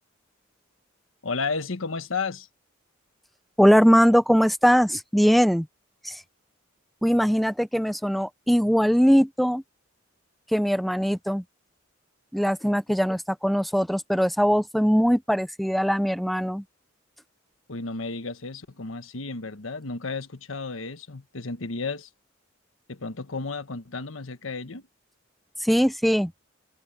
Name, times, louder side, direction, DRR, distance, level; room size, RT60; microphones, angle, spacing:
voice 1, 1.2-2.5 17.7-22.1 22.9-24.8, left 4 dB, 90° left, 1.3 m, -33 dB
voice 2, 3.6-5.7 6.0-6.2 7.0-9.6 10.5-11.4 12.3-16.6 25.6-26.3, equal, ahead, 0.5 m, -21 dB
open air
head